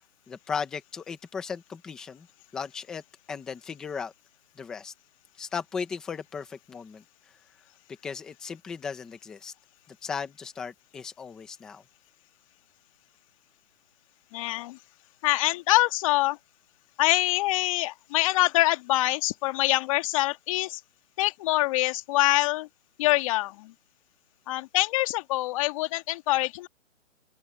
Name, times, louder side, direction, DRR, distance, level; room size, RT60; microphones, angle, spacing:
voice 1, 0.3-2.3 2.5-3.0 3.3-4.1 4.6-4.9 5.4-7.0 8.0-9.5 9.9-11.8, left 6 dB, ahead, 0.5 m, -36 dB
voice 2, 14.3-14.8 15.2-16.4 17.0-20.8 21.2-22.7 23.0-23.7 24.5-26.7, left 18 dB, 25° left, 1.9 m, -25 dB
open air
hypercardioid pair, 155°, 39 cm